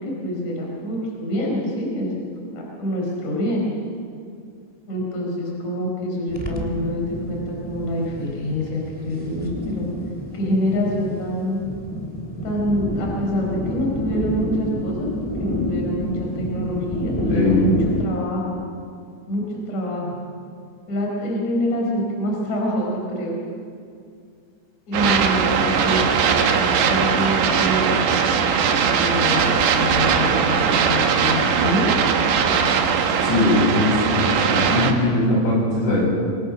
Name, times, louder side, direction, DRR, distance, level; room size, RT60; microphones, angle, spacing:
voice 1, 0.0-2.1 2.5-3.6 4.9-8.8 9.1-9.8 10.3-11.6 12.4-15.1 15.4-17.7 18.0-18.5 19.3-19.4 19.7-20.1 20.9-23.3 24.9-28.0 29.0-31.9, equal, 40° left, -2 dB, 6.1 m, -26 dB
sound 1, 6.3-18.0, left 1 dB, 5° left, 2.3 m, -29 dB
voice 2, 17.3-17.6 33.2-36.1, left 2 dB, 80° left, -3 dB, 9.9 m, -20 dB
sound 2, 24.9-34.9, right 6 dB, 75° right, 3.8 m, -20 dB
28.0 x 25.0 x 6.4 m, 2.3 s
omnidirectional pair, 5.1 m